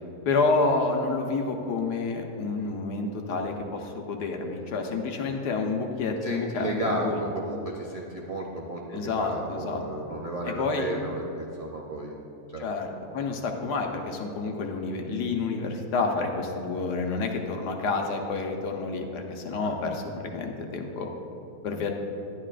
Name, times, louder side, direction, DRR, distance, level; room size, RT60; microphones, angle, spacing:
voice 1, 0.2-7.2 8.9-9.8 10.4-11.0 12.6-21.1 21.6-21.9, left 3 dB, 85° left, 3 dB, 1.4 m, -29 dB
voice 2, 6.2-12.2 12.5-12.7, right 1 dB, 60° right, -2 dB, 0.4 m, -33 dB
11.0 x 10.5 x 2.5 m, 2.8 s
omnidirectional pair, 1.7 m